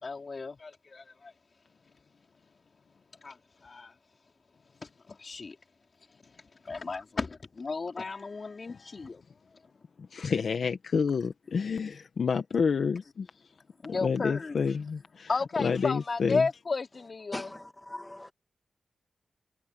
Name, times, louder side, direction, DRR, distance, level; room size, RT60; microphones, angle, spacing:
voice 1, 0.0-1.3 3.2-3.3 3.6-3.9 5.1-5.6 6.7-9.2 13.8-14.6 15.3-17.5, left 4 dB, 50° left, 3.8 m, -33 dB
voice 2, 10.1-13.3 13.9-15.3 15.6-16.5, left 5 dB, 70° left, 1.6 m, -29 dB
voice 3, 17.3-18.3, left 1 dB, 15° left, 1.9 m, -40 dB
cardioid pair, 80°, 0 cm